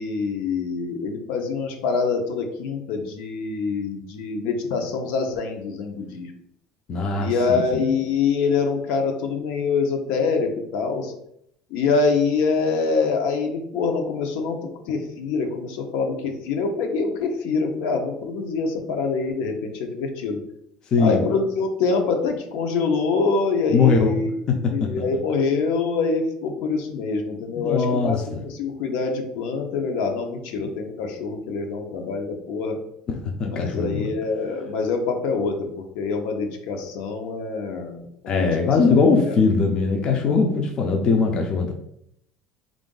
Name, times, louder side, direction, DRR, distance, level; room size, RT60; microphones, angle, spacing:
voice 1, 0.0-6.3 7.2-11.1 11.7-20.4 21.0-24.3 24.7-32.8 33.4-35.7 35.9-38.7 39.2-39.4, left 4 dB, 75° left, 4 dB, 0.7 m, -25 dB
voice 2, 6.9-7.9 20.9-21.2 23.7-24.1 24.5-24.9 27.6-28.4 30.5-30.7 33.1-34.2 38.3-41.7, left 4 dB, 30° left, 3 dB, 0.4 m, -21 dB
3.6 x 2.5 x 3.8 m, 0.74 s
cardioid pair, 170°, 3 cm